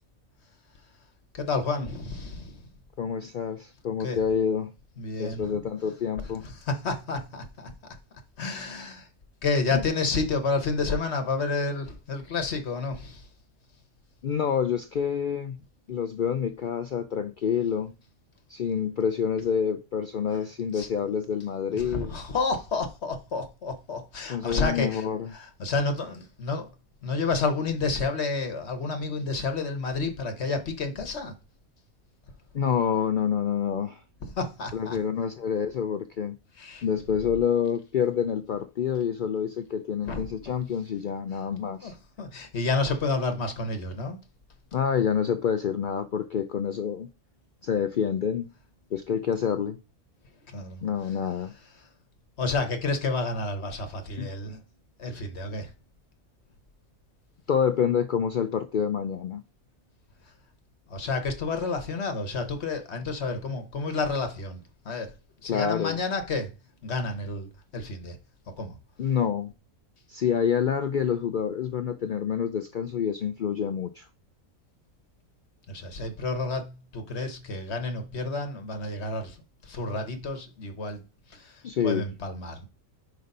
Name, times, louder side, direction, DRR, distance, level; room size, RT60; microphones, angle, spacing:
voice 1, 1.3-2.7 4.0-4.2 5.0-5.6 6.2-7.7 8.4-9.1 9.4-13.3 20.7-20.9 21.7-26.7 27.0-31.3 34.3-35.0 36.6-36.8 40.0-40.2 41.3-41.4 41.8-44.2 50.5-51.2 51.8-51.9 52.4-54.6 55.0-55.7 60.2-60.3 60.9-65.1 65.4-66.5 66.8-68.2 68.6-68.8 75.7-81.0 81.3-82.7, left 3 dB, 55° left, 1.2 m, -30 dB
voice 2, 3.0-4.7 5.2-6.4 9.7-9.8 14.2-15.6 15.9-17.9 18.5-22.1 24.3-25.3 32.5-34.0 34.7-36.4 36.8-41.9 44.7-47.1 47.6-48.5 48.9-49.8 50.8-51.5 54.2-54.3 57.5-59.4 65.5-66.0 69.0-69.5 70.1-74.1 81.6-82.1, left 7 dB, 80° left, 0.4 m, -27 dB
5.2 x 4.0 x 5.3 m
omnidirectional pair, 1.4 m